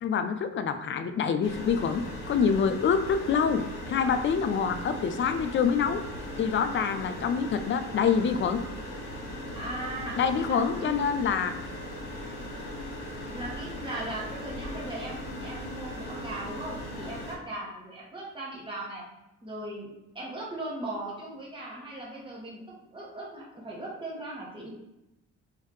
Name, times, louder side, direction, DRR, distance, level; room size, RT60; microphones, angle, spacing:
voice 1, 0.0-6.0 6.4-8.6 10.2-11.5, left 6 dB, 40° left, 9 dB, 0.4 m, -26 dB
sound 1, 1.4-17.4, left 1 dB, 60° left, 1.3 m, -38 dB
voice 2, 9.5-10.2 10.5-11.0 13.3-19.0 19.4-22.6 22.9-24.7, right 1 dB, 15° right, -4 dB, 1.3 m, -38 dB
3.0 x 2.7 x 3.4 m, 0.89 s
cardioid pair, 90°, 30 cm